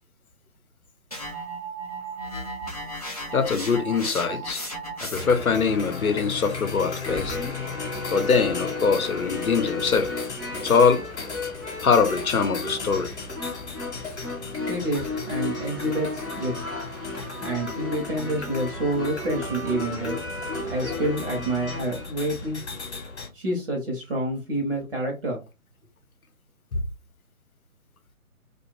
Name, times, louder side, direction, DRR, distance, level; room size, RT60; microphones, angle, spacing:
sound 1, 1.1-5.5, right 2 dB, 30° left, 0.4 m, -35 dB
voice 1, 3.3-4.6 5.0-7.4 8.1-10.1 10.6-11.0 11.8-13.2, left 5 dB, 75° left, 0.7 m, -22 dB
sound 2, 5.1-23.3, left 4 dB, 50° left, 0.9 m, -37 dB
sound 3, 7.0-22.0, left 3 dB, 15° right, 0.7 m, -34 dB
voice 2, 14.7-16.5 17.4-20.2 20.7-22.6 23.3-25.4, right 1 dB, 40° right, 0.9 m, -28 dB
2.4 x 2.2 x 3.0 m
figure-of-eight pair, 145°, 43 cm